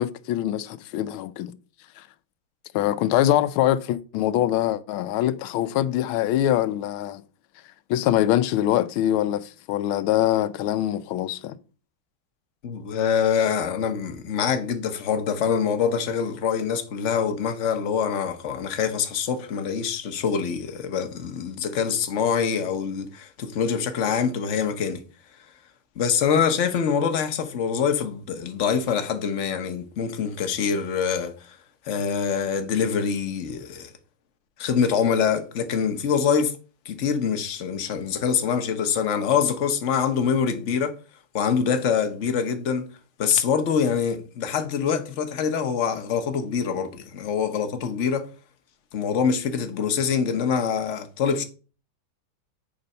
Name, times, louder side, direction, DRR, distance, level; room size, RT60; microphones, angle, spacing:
voice 1, 0.0-1.6 2.0-2.1 2.7-7.2 7.9-11.6, left 12 dB, 80° left, 1.4 m, -23 dB
voice 2, 12.6-25.0 26.0-31.6 31.8-33.9 34.6-36.5 36.8-41.0 41.3-42.9 43.2-48.3 48.9-51.4, left 7 dB, 50° left, 0.9 m, -25 dB
8.7 x 3.9 x 5.4 m
omnidirectional pair, 2.3 m